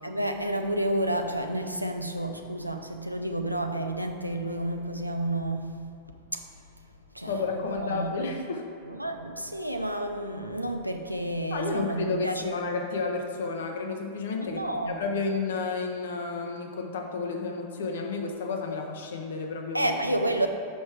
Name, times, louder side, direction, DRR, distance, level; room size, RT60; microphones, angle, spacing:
voice 1, 0.0-5.7 6.3-6.4 7.1-7.3 7.8-8.1 8.9-12.4 14.4-15.0 19.7-20.5, right 1 dB, 90° right, 5 dB, 0.5 m, -30 dB
voice 2, 7.3-8.6 11.5-19.9, left 4 dB, 60° left, 3 dB, 0.8 m, -31 dB
6.2 x 5.4 x 4.7 m, 2.5 s
figure-of-eight pair, 90°, 0 cm